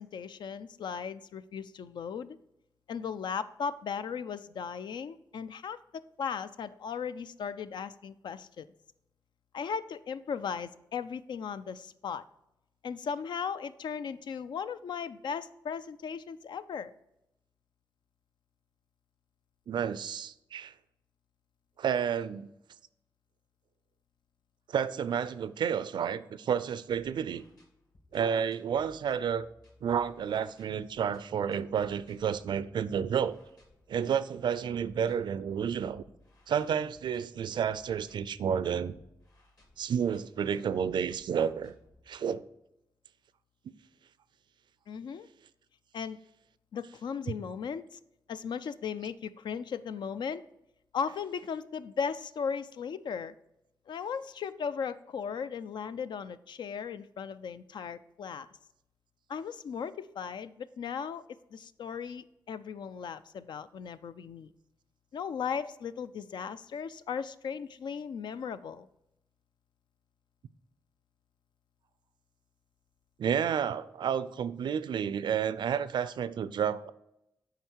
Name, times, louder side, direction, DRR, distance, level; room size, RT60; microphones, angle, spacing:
voice 1, 0.0-2.4 2.9-8.7 9.5-12.2 12.8-16.9 44.9-45.3 45.9-46.2 46.7-48.0 48.3-50.4 50.9-53.3 53.9-58.5 59.3-61.2 61.5-64.5 65.1-68.9, left 6 dB, 75° left, 0.4 m, -37 dB
voice 2, 19.7-20.7 21.8-22.5 24.7-27.4 28.1-29.5 29.8-33.4 33.9-36.0 36.5-38.9 39.8-41.7 42.1-42.4 73.2-76.9, right 8 dB, 75° right, 0.4 m, -30 dB
sound 1, 26.9-42.4, left 1 dB, 55° left, 2.2 m, -61 dB
8.0 x 4.7 x 4.5 m
cardioid pair, 90°, 8 cm